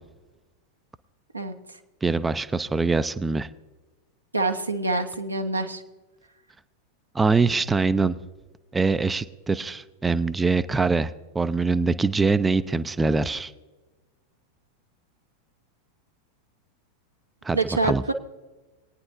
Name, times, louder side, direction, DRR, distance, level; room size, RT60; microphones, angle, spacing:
voice 1, 2.0-3.5 7.1-8.1 8.7-13.5 17.4-17.6 17.8-18.0, right 4 dB, 10° right, 13 dB, 0.4 m, -23 dB
voice 2, 4.3-5.8 17.5-18.1, right 3 dB, 80° right, 5 dB, 0.9 m, -26 dB
21.0 x 9.5 x 2.6 m, 1.2 s
figure-of-eight pair, 90°, 0 cm